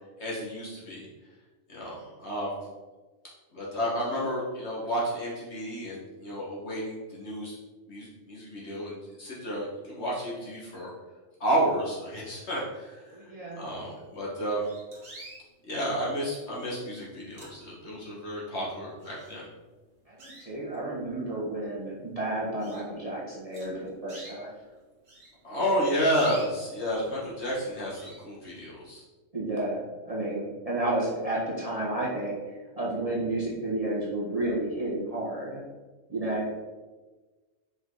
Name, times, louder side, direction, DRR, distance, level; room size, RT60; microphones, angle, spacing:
voice 1, 0.2-1.1 1.7-2.6 3.5-7.6 7.9-10.9 11.4-13.2 13.6-14.6 15.7-19.5 25.4-29.0, equal, 60° left, -5 dB, 2.0 m, -31 dB
voice 2, 13.1-13.6 20.1-24.5 29.3-32.4 32.8-35.6 36.1-36.5, right 1 dB, 30° right, -5 dB, 1.4 m, -31 dB
sound 1, 14.0-14.1 14.6-15.5 16.2-16.6 17.1-18.0 18.5-18.6 19.0-19.7 20.2-20.9 21.5-21.6 22.0-22.1 22.6-22.9 23.5-24.4 25.1-27.1 27.5-27.7 27.9-28.2, right 2 dB, 60° right, 1.7 m, -48 dB
5.1 x 5.1 x 4.0 m, 1.2 s
omnidirectional pair, 1.3 m